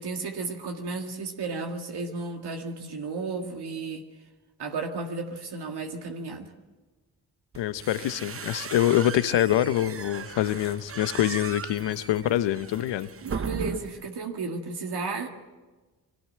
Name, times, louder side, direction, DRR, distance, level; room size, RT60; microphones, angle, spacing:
voice 1, 0.0-4.1 4.6-6.5 13.2-15.3, right 4 dB, 65° right, 3 dB, 2.0 m, -33 dB
sound 1, 7.5-14.1, right 6 dB, 30° right, 0.8 m, -37 dB
voice 2, 7.6-13.1, left 12 dB, 85° left, 14 dB, 0.9 m, -25 dB
22.0 x 17.0 x 7.7 m, 1.3 s
cardioid pair, 65°, 42 cm